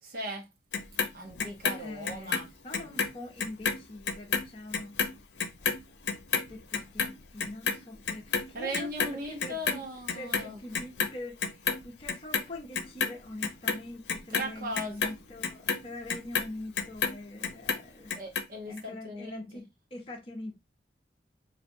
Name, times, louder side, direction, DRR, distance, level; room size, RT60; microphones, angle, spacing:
voice 1, 0.0-0.4 1.1-2.5 2.8-3.1 8.5-10.6 14.3-15.1 18.2-18.7 19.0-19.4, equal, 55° right, 0.9 m, -38 dB
Clock, 0.7-3.1 3.4-9.8 10.1-11.1 11.4-12.4 12.7-17.2 17.4-18.4 18.8-18.9, left 6 dB, 75° left, 0.7 m, -30 dB
voice 2, 1.8-5.0 6.3-9.9 10.1-18.1 18.7-20.6, left 2 dB, 30° left, 0.7 m, -43 dB
5.6 x 2.5 x 2.6 m
head